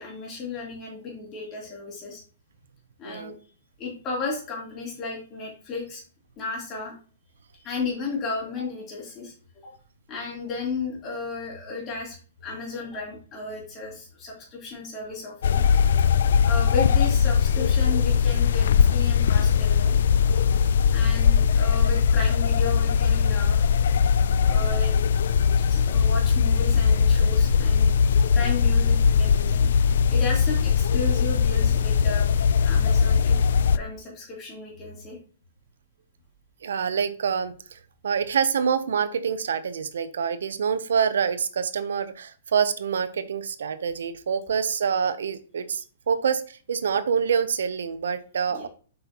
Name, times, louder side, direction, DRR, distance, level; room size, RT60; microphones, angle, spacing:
voice 1, 0.0-2.2 3.0-3.3 3.8-6.0 6.4-6.9 7.5-9.3 9.6-9.7 10.1-12.2 12.4-15.6 16.4-20.0 20.9-23.7 24.5-24.9 25.7-27.9 28.3-29.7 30.1-32.3 32.6-33.4 33.7-35.2 48.5-48.7, left 4 dB, 25° left, -3 dB, 3.1 m, -34 dB
voice 2, 3.0-3.3 36.6-48.7, right 6 dB, 85° right, 13 dB, 0.7 m, -26 dB
sound 1, 15.4-33.8, left 6 dB, 70° left, 0.4 m, -20 dB
7.7 x 5.4 x 2.9 m, 0.40 s
hypercardioid pair, 160°, 0 cm